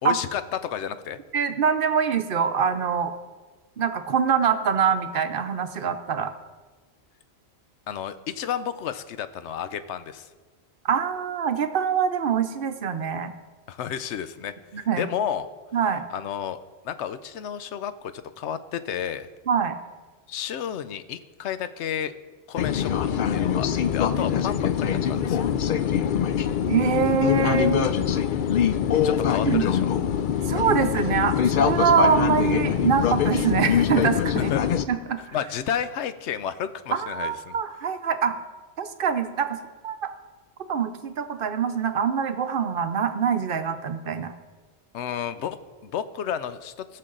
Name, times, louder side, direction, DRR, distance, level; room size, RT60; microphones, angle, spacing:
voice 1, 0.0-1.2 7.9-10.3 13.7-15.5 16.1-16.6 16.8-19.3 20.3-22.1 22.5-25.4 29.0-29.9 34.5-34.6 35.3-37.6 44.9-47.0, left 9 dB, 90° left, 12 dB, 0.9 m, -31 dB
voice 2, 1.3-3.1 3.8-6.3 10.8-13.3 14.7-15.1 15.7-16.0 19.5-19.8 26.7-27.9 29.4-29.7 30.5-34.5 34.9-35.4 36.9-38.4 38.8-40.1 40.7-44.3, right 7 dB, 60° right, 9 dB, 0.8 m, -24 dB
sound 1, 22.6-34.8, left 8 dB, 60° left, 0.6 m, -23 dB
17.5 x 6.6 x 3.8 m, 1.4 s
omnidirectional pair, 1.1 m